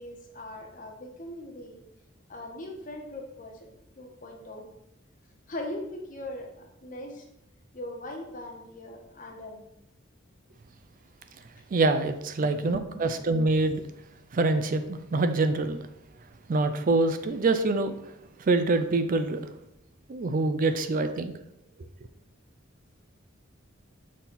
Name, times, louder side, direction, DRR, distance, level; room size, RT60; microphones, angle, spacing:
voice 1, 0.0-1.8 2.3-3.7 4.0-4.7 5.5-7.3 7.7-9.6 12.4-13.1 20.7-20.8, left 1 dB, 45° left, 1 dB, 1.2 m, -40 dB
voice 2, 11.7-13.8 14.3-15.8 16.5-18.1 18.4-19.4 20.1-21.3, right 3 dB, 45° right, 9 dB, 0.4 m, -25 dB
6.2 x 3.9 x 4.1 m, 0.81 s
head